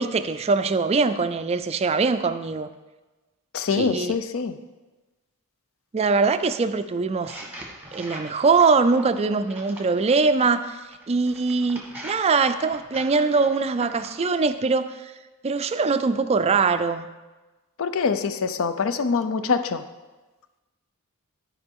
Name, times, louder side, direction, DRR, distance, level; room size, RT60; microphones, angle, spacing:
voice 1, 0.0-2.7 3.7-4.2 5.9-7.4 7.9-10.8 11.1-15.1 15.4-17.1, right 4 dB, 30° right, 11 dB, 0.3 m, -22 dB
voice 2, 3.5-4.6 17.8-19.9, left 5 dB, 60° left, 12 dB, 0.5 m, -24 dB
sound 1, 7.2-10.2 10.9-14.2, right 1 dB, 5° right, 1.2 m, -42 dB
12.5 x 4.9 x 3.6 m, 1.2 s
head